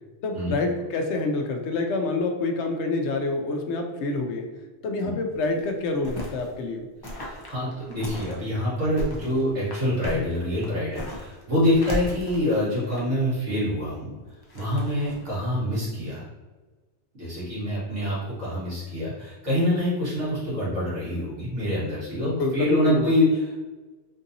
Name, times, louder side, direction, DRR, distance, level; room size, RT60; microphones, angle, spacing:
voice 1, 0.2-4.5 4.8-6.9 22.2-23.1, left 3 dB, 75° left, 4 dB, 0.8 m, -27 dB
sound 1, 5.3-6.5 7.0-8.4 8.8-11.4 11.7-13.2 14.3-15.3, equal, 30° left, 0.5 m, -36 dB
voice 2, 7.2-14.1 14.5-16.2 17.2-23.6, left 1 dB, 85° right, -8 dB, 1.9 m, -26 dB
3.7 x 2.6 x 2.7 m, 1.3 s
omnidirectional pair, 1.2 m